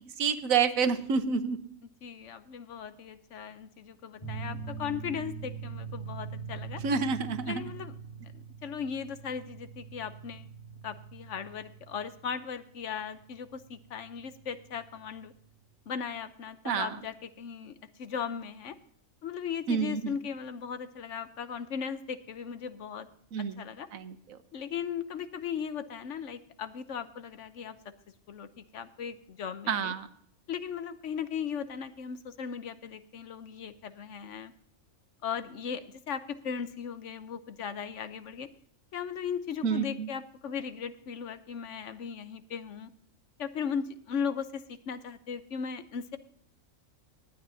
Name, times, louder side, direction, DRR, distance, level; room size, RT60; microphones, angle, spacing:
voice 1, 0.2-1.6 6.8-7.6 16.6-16.9 19.7-20.0 23.3-23.6 23.9-24.1 29.7-30.1 39.6-40.1, right 6 dB, 85° right, 11 dB, 1.3 m, -28 dB
voice 2, 2.0-6.8 7.5-7.9 8.3-10.4 10.8-15.3 15.9-18.7 19.2-23.1 23.4-23.9 24.5-27.8 28.3-29.9 30.5-34.5 35.2-38.5 38.9-42.9 43.4-46.2, left 7 dB, 65° left, 12 dB, 1.1 m, -37 dB
sound 1, 4.2-15.4, right 6 dB, 25° left, 1.5 m, -43 dB
19.5 x 9.2 x 2.7 m, 0.65 s
omnidirectional pair, 1.4 m